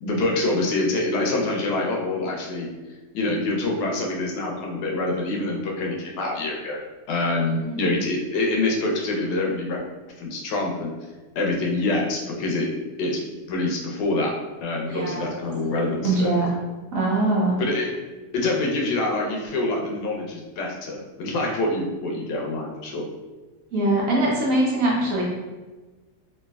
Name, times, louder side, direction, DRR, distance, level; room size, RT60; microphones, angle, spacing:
voice 1, 0.0-2.7 3.1-6.8 7.1-9.8 10.2-10.9 11.4-12.7 13.0-13.2 13.5-14.3 14.6-16.3 17.6-17.9 18.3-23.0, left 2 dB, 85° left, -1 dB, 1.2 m, -25 dB
voice 2, 7.6-8.0 14.9-15.3 16.0-16.5 16.9-17.6 23.7-25.2, right 2 dB, 65° right, -3 dB, 0.9 m, -22 dB
3.1 x 2.8 x 2.2 m, 1.2 s
omnidirectional pair, 1.7 m